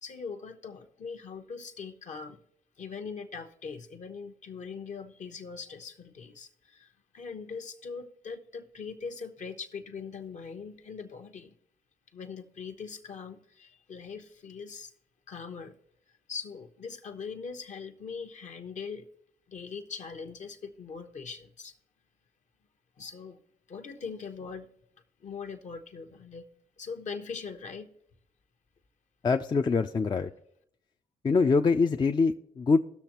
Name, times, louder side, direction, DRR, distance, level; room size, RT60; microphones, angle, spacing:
voice 1, 0.0-2.4 2.8-11.5 12.1-14.9 15.3-15.8 16.3-19.1 19.5-21.7 23.0-23.4 23.7-24.7 25.2-26.5 26.8-27.9, left 5 dB, 55° left, 1.0 m, -41 dB
voice 2, 29.2-30.3 31.2-32.8, left 4 dB, 30° left, 0.5 m, -24 dB
17.0 x 6.4 x 3.0 m
supercardioid pair, 65°, 15 cm